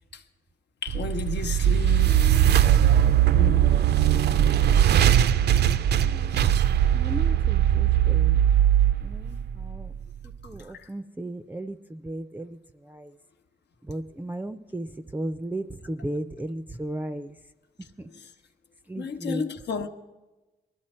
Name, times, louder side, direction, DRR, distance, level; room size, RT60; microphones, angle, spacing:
voice 1, 0.8-2.2 3.3-3.6 10.5-10.9 18.1-18.3 19.0-19.9, left 5 dB, 85° left, 1.1 m, -33 dB
sound 1, 0.9-10.0, right 10 dB, 75° right, 0.4 m, -20 dB
voice 2, 2.1-2.6 4.4-4.5 6.0-6.5 6.9-8.4 9.0-9.9 10.4-13.1 13.8-17.3 18.0-18.1 18.9-19.4, right 1 dB, 10° right, 0.4 m, -35 dB
20.0 x 13.0 x 4.3 m
wide cardioid pair, 150°, 17 cm